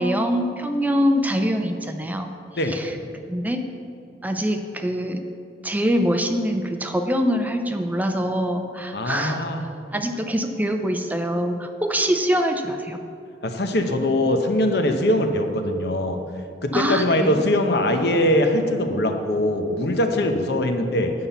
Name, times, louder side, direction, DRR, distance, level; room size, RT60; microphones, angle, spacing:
voice 1, 0.0-2.3 2.7-2.9 3.3-3.7 4.2-5.2 5.6-9.4 9.9-13.0 16.7-17.5, equal, 10° right, 6 dB, 0.4 m, -24 dB
voice 2, 8.9-9.6 13.4-16.2 16.6-21.1, left 1 dB, 65° left, 5 dB, 0.9 m, -22 dB
9.6 x 5.7 x 6.9 m, 2.6 s
head